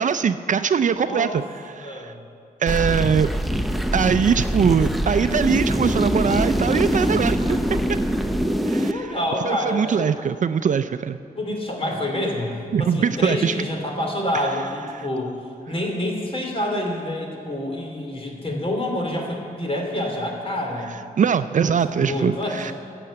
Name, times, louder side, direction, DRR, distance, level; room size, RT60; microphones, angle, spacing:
voice 1, 0.0-2.1 2.6-3.3 3.9-7.6 8.7-9.2 9.4-11.2 12.7-13.5 14.3-14.5 14.9-15.1 21.2-22.7, right 7 dB, 55° right, 11 dB, 0.4 m, -22 dB
voice 2, 1.0-1.4 1.8-2.2 8.9-10.3 11.3-15.4 15.7-20.9 21.6-22.7, left 1 dB, 40° left, 1 dB, 2.9 m, -27 dB
sound 1, 2.7-8.9, equal, ahead, 0.7 m, -23 dB
13.5 x 7.8 x 8.4 m, 2.5 s
cardioid pair, 85°, 16 cm